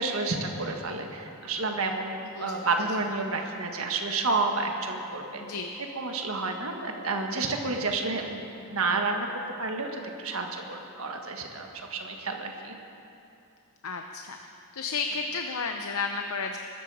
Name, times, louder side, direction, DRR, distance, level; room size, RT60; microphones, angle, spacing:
voice 1, 0.0-5.4 5.9-9.3 9.6-12.8, right 3 dB, 70° right, 3 dB, 1.6 m, -30 dB
voice 2, 5.4-5.7 13.8-14.4 14.7-16.6, left 4 dB, 75° left, 4 dB, 0.8 m, -32 dB
21.5 x 13.0 x 4.9 m, 2.7 s
head